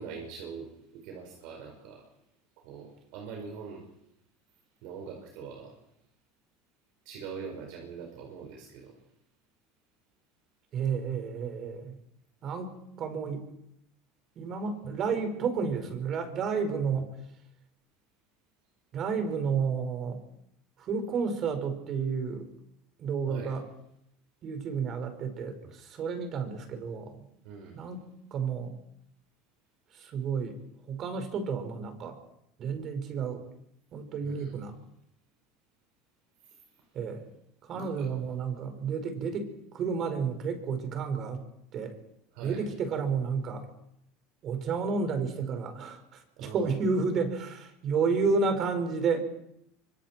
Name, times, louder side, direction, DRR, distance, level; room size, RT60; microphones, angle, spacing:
voice 1, 0.0-2.1 2.6-3.9 4.8-5.8 7.1-8.9 23.3-23.5 27.4-27.8 34.2-34.5 36.4-36.9 37.7-38.1 42.3-42.6 46.4-46.8, right 5 dB, 70° right, 2 dB, 5.3 m, -43 dB
voice 2, 10.7-12.0 12.4-13.4 14.4-17.2 18.9-20.2 20.8-22.5 23.0-23.6 24.4-27.3 27.7-28.7 29.9-30.6 30.9-32.2 32.6-33.5 33.9-34.7 36.9-37.3 37.6-41.4 41.7-41.9 42.4-43.7 44.4-49.2, right 5 dB, 45° right, 7 dB, 5.3 m, -31 dB
25.5 x 24.5 x 4.6 m, 0.75 s
hypercardioid pair, 90°, 0 cm